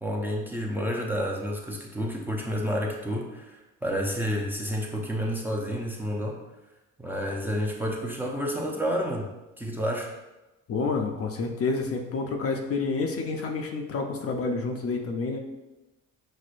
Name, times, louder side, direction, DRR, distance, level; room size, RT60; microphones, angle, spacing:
voice 1, 0.0-6.4 7.0-9.3 9.6-10.1, equal, 5° right, -2 dB, 0.6 m, -30 dB
voice 2, 10.7-15.4, left 4 dB, 45° left, 3 dB, 0.5 m, -29 dB
6.0 x 2.1 x 2.5 m, 1.0 s
cardioid pair, 100°, 33 cm